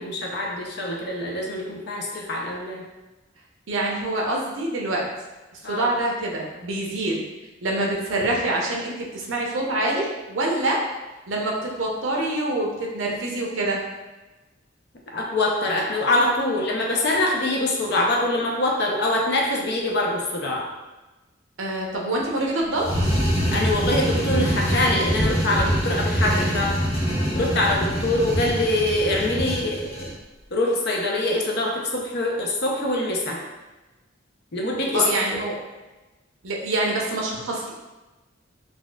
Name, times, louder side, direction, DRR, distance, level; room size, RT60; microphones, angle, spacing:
voice 1, 0.0-2.8 5.6-5.9 15.1-20.6 23.5-26.7 27.3-30.1 30.5-33.4 34.5-35.0 35.3-35.4, left 1 dB, 60° left, -2 dB, 0.6 m, -24 dB
voice 2, 3.7-5.1 5.7-7.2 7.6-10.8 11.3-13.8 21.6-22.9 34.9-35.6 36.4-37.7, right 2 dB, 85° right, -1 dB, 0.7 m, -25 dB
sound 1, 22.7-30.1, equal, 35° left, 0.9 m, -24 dB
4.2 x 2.3 x 2.3 m, 1.1 s
head